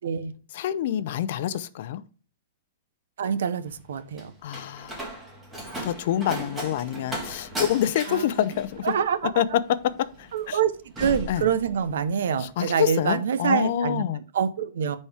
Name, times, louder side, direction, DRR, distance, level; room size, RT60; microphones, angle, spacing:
voice 1, 0.0-0.3 3.2-4.3 8.1-8.3 8.8-9.4 10.3-10.7 11.0-14.0 14.3-15.0, right 7 dB, 75° right, 0.8 m, -26 dB
voice 2, 0.5-2.0 4.4-5.2 5.8-8.9 9.4-9.6 10.0-10.6 11.3-11.5 12.4-14.2, left 11 dB, 50° left, 0.5 m, -27 dB
Slam, 3.7-12.1 12.4-12.9, right 1 dB, 10° right, 1.7 m, -37 dB
9.9 x 4.3 x 3.5 m
hypercardioid pair, 165°, 0 cm